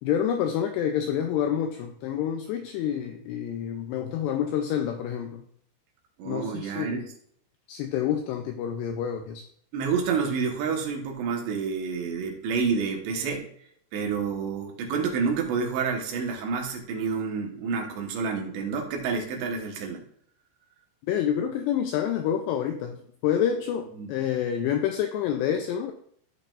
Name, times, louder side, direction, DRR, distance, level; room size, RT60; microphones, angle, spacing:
voice 1, 0.0-5.4 6.3-7.0 7.7-9.5 21.1-25.9, left 9 dB, 85° left, 6 dB, 2.5 m, -28 dB
voice 2, 6.2-7.1 9.7-13.5 13.9-20.0 23.9-24.1, right 5 dB, 70° right, 2 dB, 3.3 m, -29 dB
14.0 x 5.6 x 2.5 m, 0.66 s
omnidirectional pair, 5.5 m